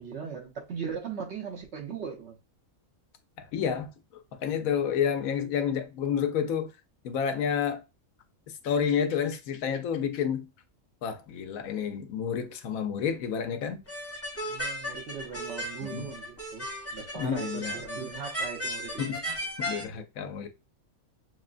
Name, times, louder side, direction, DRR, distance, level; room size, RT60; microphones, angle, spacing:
voice 1, 0.0-2.4 14.4-16.7 16.9-19.0, right 6 dB, 60° right, 1.1 m, -39 dB
voice 2, 3.4-6.7 7.0-7.8 8.6-10.5 11.0-13.8 15.8-16.1 17.1-17.8 19.0-20.5, left 7 dB, 85° left, 1.1 m, -30 dB
sound 1, 13.9-19.8, equal, 15° left, 0.7 m, -35 dB
6.1 x 2.1 x 2.4 m
omnidirectional pair, 1.4 m